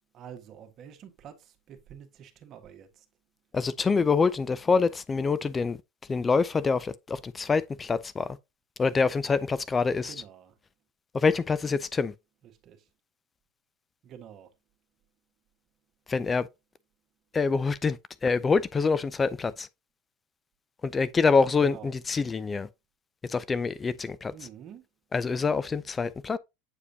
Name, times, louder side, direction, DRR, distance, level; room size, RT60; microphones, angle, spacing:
voice 1, 0.1-3.0 10.0-10.5 12.4-12.9 14.0-14.5 21.6-22.0 24.3-24.9, right 8 dB, 45° right, 1.5 m, -47 dB
voice 2, 3.5-5.8 6.1-8.4 8.8-10.1 11.1-12.1 16.1-16.5 17.3-19.7 20.8-22.7 23.2-24.3 25.1-26.4, left 4 dB, 20° left, 0.3 m, -26 dB
8.3 x 4.9 x 2.7 m
hypercardioid pair, 100°, 0 cm